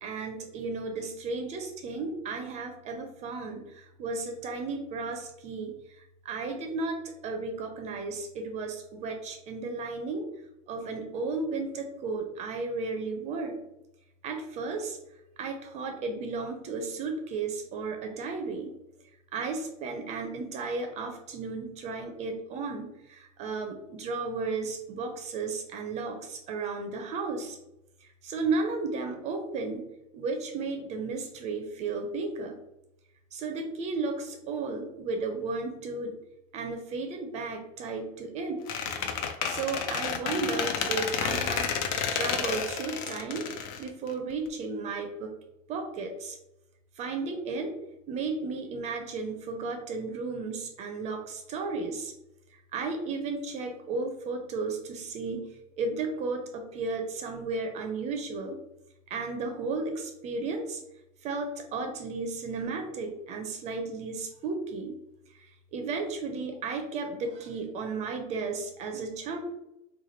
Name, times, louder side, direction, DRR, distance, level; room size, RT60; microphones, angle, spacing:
voice 1, 0.0-10.2 10.7-13.6 14.2-15.0 15.4-18.7 19.3-27.6 28.0-29.9 30.1-32.6 33.3-36.2 36.5-38.6 39.5-41.7 42.1-43.5 43.8-45.3 45.7-46.4 47.0-47.7 48.1-52.1 52.5-58.6 59.1-60.8 61.2-65.0 65.3-65.5 65.7-69.4, right 3 dB, 35° right, 4 dB, 0.5 m, -34 dB
Squeak, 38.7-44.5, left 7 dB, 60° left, 0.5 m, -31 dB
3.1 x 2.2 x 4.2 m, 0.89 s
supercardioid pair, 140°, 19 cm